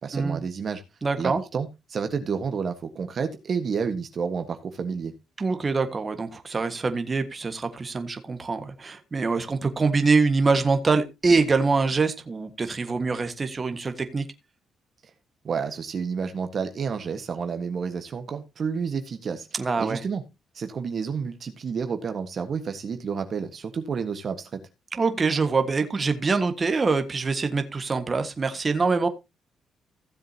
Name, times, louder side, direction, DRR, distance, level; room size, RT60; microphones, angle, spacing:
voice 1, 0.0-0.8 1.2-5.1 15.4-19.5 19.8-20.2 20.5-24.6, right 6 dB, 50° right, 7 dB, 1.5 m, -30 dB
voice 2, 1.0-1.4 5.4-14.2 19.5-20.0 24.9-29.1, right 4 dB, 30° right, 8 dB, 1.6 m, -24 dB
16.0 x 7.5 x 2.9 m, 0.23 s
cardioid pair, 90°, 0 cm